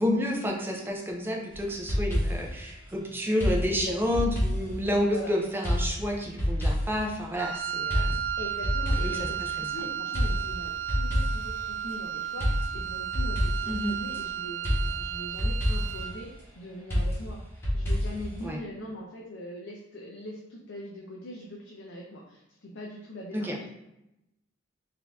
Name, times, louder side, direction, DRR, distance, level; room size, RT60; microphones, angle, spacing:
voice 1, 0.0-8.2 9.0-9.7 13.7-14.0 18.4-18.6 23.3-23.6, equal, 10° right, -1 dB, 0.5 m, -30 dB
sound 1, 1.5-2.6 3.4-5.2 5.6-7.1 7.9-9.7 10.1-11.6 12.4-14.2 14.6-16.1 16.9-18.5, equal, 15° left, 1.2 m, -28 dB
voice 2, 3.7-4.3 5.0-5.3 8.4-16.3 16.6-23.7, equal, 65° left, -1 dB, 0.6 m, -42 dB
Wind instrument woodwind instrument, 7.3-16.2, right 9 dB, 75° right, 0.3 m, -34 dB
4.1 x 2.7 x 3.4 m, 0.87 s
head